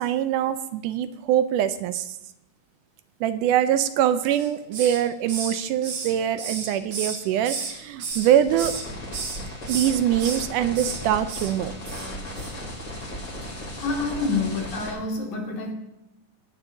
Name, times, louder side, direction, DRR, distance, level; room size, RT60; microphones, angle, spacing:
voice 1, 0.0-2.2 3.2-8.8 9.7-11.7, right 10 dB, 80° right, 11 dB, 2.1 m, -23 dB
Hiss, 4.3-5.0 5.3-7.7 8.0-8.8 9.1-9.4 9.7-10.4 10.7-11.0 11.3-11.5 11.9-12.1 12.4-12.5, right 4 dB, 65° right, 3.1 m, -32 dB
sound 1, 8.1-14.9, left 1 dB, 35° left, 3.6 m, -36 dB
voice 2, 13.8-15.7, left 3 dB, 70° left, -1 dB, 3.7 m, -27 dB
19.5 x 10.0 x 2.7 m, 0.90 s
omnidirectional pair, 3.7 m